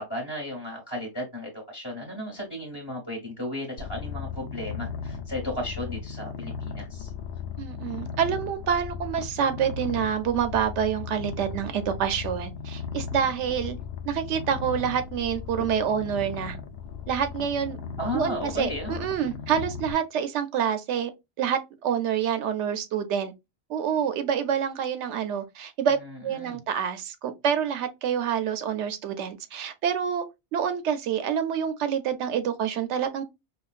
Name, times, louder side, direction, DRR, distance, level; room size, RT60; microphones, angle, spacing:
voice 1, 0.0-7.1 18.0-18.9 26.0-26.6, left 1 dB, 20° left, 1.1 m, -34 dB
Purr, 3.8-19.9, left 6 dB, 65° left, 0.8 m, -36 dB
voice 2, 7.6-13.8 14.1-16.6 17.1-17.8 18.1-21.1 21.4-23.3 23.7-26.0 26.2-30.3 30.5-33.2, right 8 dB, 85° right, 0.9 m, -27 dB
5.0 x 2.2 x 2.4 m
omnidirectional pair, 1.1 m